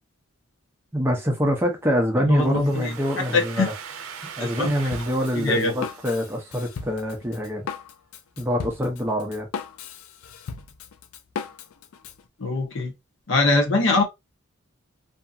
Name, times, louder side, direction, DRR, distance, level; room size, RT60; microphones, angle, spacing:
voice 1, 0.9-3.7 4.2-7.6 8.4-9.5, equal, 10° right, 0.5 m, -25 dB
voice 2, 2.2-3.7 4.4-4.9 5.3-5.8 12.4-12.9 13.3-14.0, left 3 dB, 65° left, 0.8 m, -23 dB
Domestic sounds home sounds, 2.4-7.1, right 6 dB, 80° right, 0.5 m, -41 dB
Drum kit, 4.9-12.2, left 6 dB, 80° left, 0.4 m, -37 dB
2.7 x 2.5 x 2.3 m
head